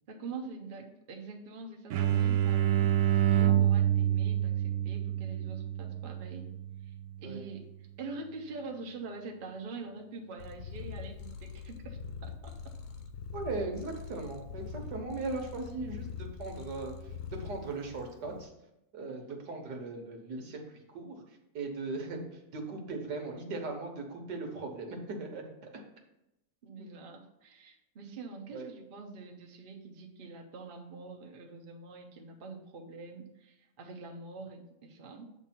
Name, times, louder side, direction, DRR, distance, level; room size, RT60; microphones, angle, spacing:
voice 1, 0.1-6.5 6.8-6.9 7.2-7.7 8.0-12.7 19.1-19.2 26.6-35.3, right 3 dB, 40° right, 2 dB, 0.9 m, -45 dB
sound 1, 1.9-7.4, right 11 dB, 70° right, 0.8 m, -28 dB
Purr, 10.4-18.5, left 6 dB, 60° left, 0.9 m, -43 dB
voice 2, 13.3-18.5 18.9-21.2 21.5-25.5 26.8-26.9 28.5-28.7, right 3 dB, 85° right, 2 dB, 1.8 m, -38 dB
8.3 x 3.3 x 5.9 m, 0.88 s
omnidirectional pair, 1.8 m